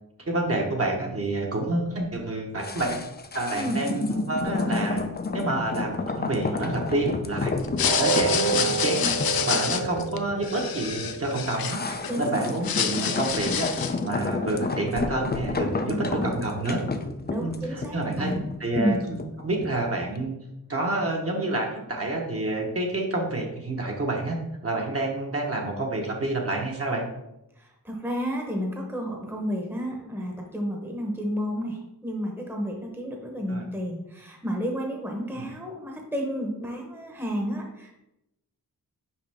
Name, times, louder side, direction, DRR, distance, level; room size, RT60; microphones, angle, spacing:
voice 1, 0.3-3.0 3.3-5.0 5.3-7.5 8.0-11.8 12.2-13.7 14.0-16.8 17.4-18.3 18.6-18.9 19.4-20.3 20.7-24.4 24.6-27.0 33.5-33.7 35.3-35.5, right 2 dB, 40° right, 0 dB, 1.1 m, -28 dB
sound 1, 2.6-19.9 20.2-20.3, left 3 dB, 30° left, 0.5 m, -31 dB
sound 2, 7.6-12.1 12.5-14.1, left 8 dB, 75° left, 0.5 m, -28 dB
sound 3, 7.8-13.8 14.2-14.4 14.9-15.0, right 5 dB, 80° right, 0.6 m, -31 dB
voice 2, 12.1-12.5 15.9-16.4 17.3-18.5 18.7-19.0 27.6-38.0, equal, 5° right, 1 dB, 1.0 m, -31 dB
5.7 x 5.0 x 3.5 m, 0.88 s
wide cardioid pair, 110°, 36 cm